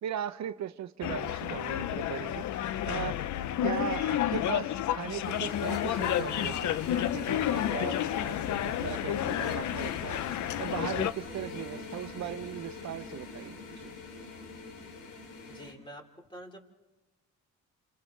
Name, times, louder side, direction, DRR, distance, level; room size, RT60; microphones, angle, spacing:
voice 1, 0.0-3.2 3.6-8.4 8.6-14.0, right 10 dB, 65° right, 0.8 m, -38 dB
sound 1, 1.0-11.1, left 11 dB, 75° left, 0.7 m, -31 dB
sound 2, 5.2-15.7, left 3 dB, 90° left, 3.2 m, -43 dB
voice 2, 15.4-16.6, right 1 dB, 15° left, 4.4 m, -47 dB
30.0 x 27.0 x 3.3 m
cardioid pair, 90°, 30 cm